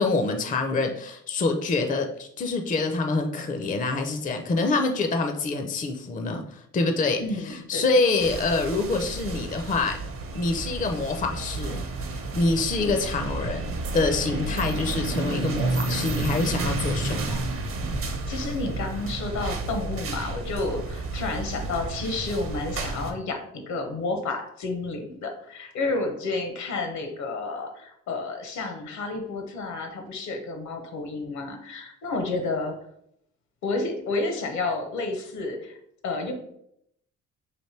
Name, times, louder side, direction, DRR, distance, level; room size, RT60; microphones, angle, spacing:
voice 1, 0.0-10.0 10.3-11.8 12.3-13.6 13.9-17.4, left 3 dB, 25° left, 4 dB, 0.5 m, -26 dB
voice 2, 7.2-8.0 18.0-32.8 33.6-35.8 36.0-36.3, left 3 dB, 70° left, 5 dB, 0.9 m, -31 dB
sound 1, 8.2-23.1, right 2 dB, 45° right, 0.7 m, -31 dB
sound 2, 13.8-14.2 14.4-19.2, right 8 dB, 90° right, 0.7 m, -46 dB
3.3 x 2.6 x 4.3 m, 0.74 s
cardioid pair, 90°, 30 cm